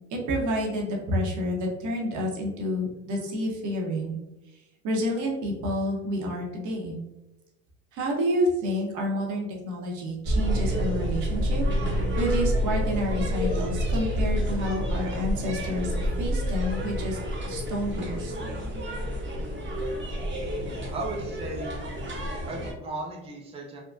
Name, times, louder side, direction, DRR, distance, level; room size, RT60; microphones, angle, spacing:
voice 1, 0.1-4.2 4.8-7.0 7.9-17.2 17.5-18.4, equal, 65° right, 0 dB, 0.9 m, -29 dB
sound 1, 10.2-22.7, equal, 35° right, 0.9 m, -28 dB
voice 2, 20.9-21.8 22.5-23.8, right 2 dB, 20° right, -1 dB, 0.5 m, -35 dB
3.4 x 2.2 x 2.5 m, 0.99 s
cardioid pair, 100°, 32 cm